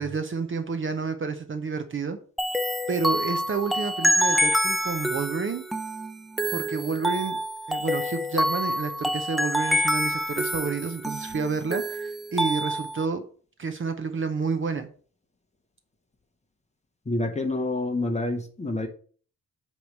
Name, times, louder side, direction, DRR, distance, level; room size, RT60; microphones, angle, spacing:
voice 1, 0.0-2.2 2.9-5.6 6.5-7.4 7.7-13.2 13.6-14.9, right 5 dB, 35° right, 8 dB, 0.7 m, -30 dB
sound 1, 2.4-13.1, equal, ahead, 0.4 m, -27 dB
voice 2, 17.1-18.9, left 2 dB, 20° left, 6 dB, 0.9 m, -27 dB
8.5 x 3.2 x 6.4 m, 0.42 s
wide cardioid pair, 175°, 36 cm